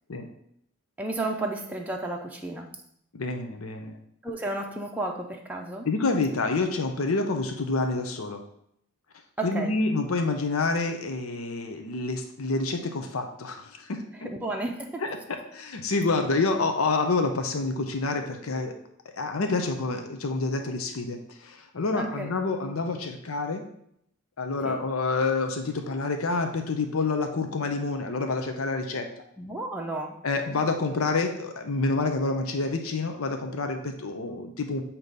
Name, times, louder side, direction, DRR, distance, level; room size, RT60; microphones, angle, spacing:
voice 1, 1.0-2.7 4.2-5.9 9.4-9.7 14.2-15.0 21.9-22.3 24.6-24.8 29.4-30.2, right 2 dB, 5° right, 0 dB, 0.5 m, -32 dB
voice 2, 3.1-4.0 5.8-8.4 9.4-14.0 15.0-18.7 19.2-23.6 24.4-29.2 30.2-34.8, left 3 dB, 85° left, 5 dB, 0.7 m, -28 dB
8.1 x 3.0 x 5.2 m, 0.71 s
head